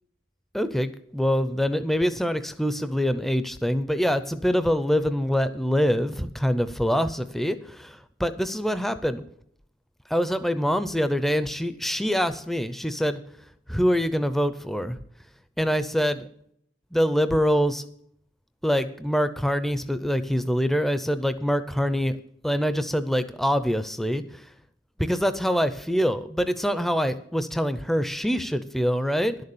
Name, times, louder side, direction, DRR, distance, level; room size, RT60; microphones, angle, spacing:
voice 1, 0.5-9.2 10.1-13.2 13.7-15.0 15.6-16.3 16.9-17.8 18.6-22.2 22.4-24.5 25.0-29.4, equal, ahead, 11 dB, 0.4 m, -25 dB
11.5 x 6.6 x 7.1 m, 0.66 s
head